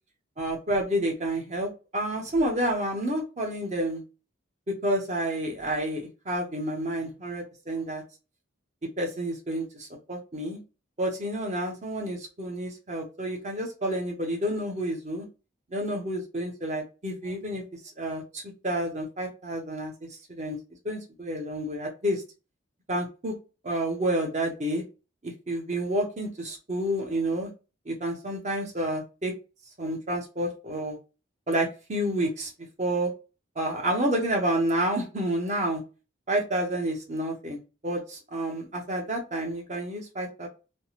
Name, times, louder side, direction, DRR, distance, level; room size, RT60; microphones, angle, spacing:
voice 1, 0.4-4.0 4.8-8.0 9.0-10.6 11.0-15.3 15.7-17.6 18.0-19.9 20.3-20.6 20.8-22.2 22.9-23.3 23.6-24.8 25.2-27.5 27.9-29.3 29.8-31.0 31.5-32.5 32.8-33.1 33.6-35.8 36.3-40.5, right 1 dB, 35° right, 1 dB, 0.9 m, -29 dB
3.3 x 2.0 x 2.8 m, 0.31 s
head